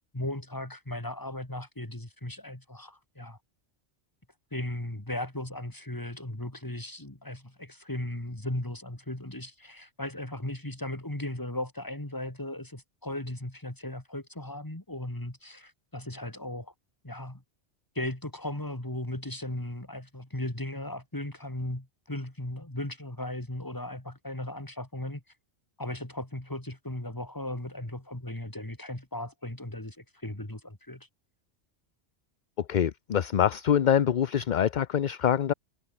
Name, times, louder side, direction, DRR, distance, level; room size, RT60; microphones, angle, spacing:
voice 1, 0.1-3.4 4.5-16.7 17.0-17.4 17.9-25.2 25.8-31.1, left 1 dB, 15° left, 2.9 m, -37 dB
voice 2, 32.7-35.5, left 9 dB, 50° left, 0.7 m, -25 dB
omnidirectional pair, 1.2 m